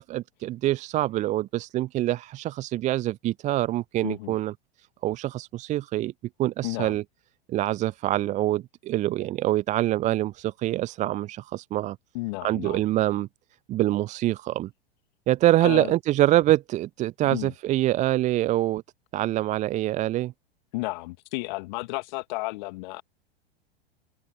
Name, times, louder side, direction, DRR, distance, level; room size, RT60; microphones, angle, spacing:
voice 1, 0.0-4.5 5.0-6.1 6.4-7.0 7.5-12.0 12.4-13.3 13.7-14.7 15.3-18.8 19.1-20.3, right 15 dB, 25° right, 0.6 m, -25 dB
voice 2, 4.0-4.4 6.6-7.0 12.1-12.8 15.6-15.9 17.2-17.5 20.7-23.0, left 23 dB, 45° left, 2.2 m, -33 dB
figure-of-eight pair, 90°, 30 cm